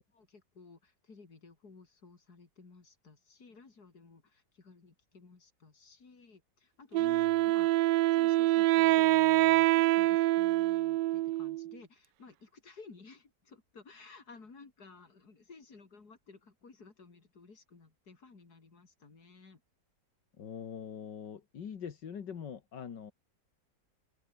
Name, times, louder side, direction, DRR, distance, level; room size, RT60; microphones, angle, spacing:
voice 1, 0.0-7.1 7.4-7.7 8.1-19.6, left 4 dB, 65° left, 3.8 m, -55 dB
Wind instrument woodwind instrument, 6.9-11.7, right 17 dB, 90° right, 1.2 m, -25 dB
voice 2, 7.0-7.3 20.4-23.1, left 7 dB, 85° left, 2.3 m, -43 dB
open air
omnidirectional pair, 1.8 m